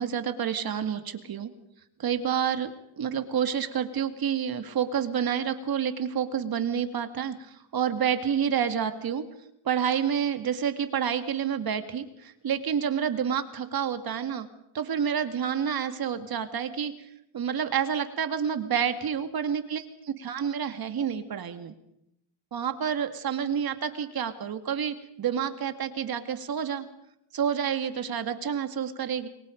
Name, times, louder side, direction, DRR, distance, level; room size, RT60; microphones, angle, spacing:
voice 1, 0.0-1.5 2.0-2.7 3.0-9.2 9.7-14.5 14.7-16.9 17.3-21.7 22.5-26.9 27.3-29.3, right 8 dB, 50° right, 8 dB, 2.2 m, -29 dB
28.0 x 22.0 x 5.3 m, 0.79 s
cardioid pair, 120°, 47 cm